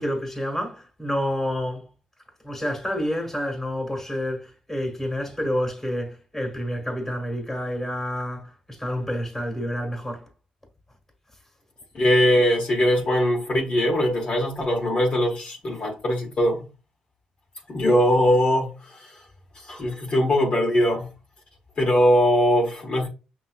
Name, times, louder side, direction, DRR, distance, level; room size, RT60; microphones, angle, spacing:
voice 1, 0.0-1.8 2.4-10.2, equal, 10° left, 1.7 m, -29 dB
voice 2, 11.9-16.7 17.7-19.1 19.6-21.1 21.8-23.1, equal, 45° left, 1.3 m, -21 dB
5.7 x 3.0 x 2.4 m
cardioid pair, 80°, 3 cm